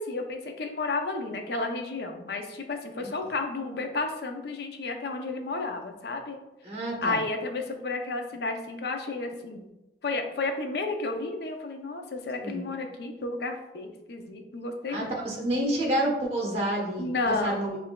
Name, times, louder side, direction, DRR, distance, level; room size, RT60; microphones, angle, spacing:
voice 1, 0.0-6.4 7.0-9.7 10.0-15.1 17.0-17.7, left 3 dB, 65° left, 4 dB, 0.5 m, -32 dB
voice 2, 6.6-7.2 12.4-12.6 14.9-17.8, right 1 dB, 35° right, -2 dB, 0.9 m, -29 dB
5.5 x 2.5 x 2.2 m, 0.96 s
head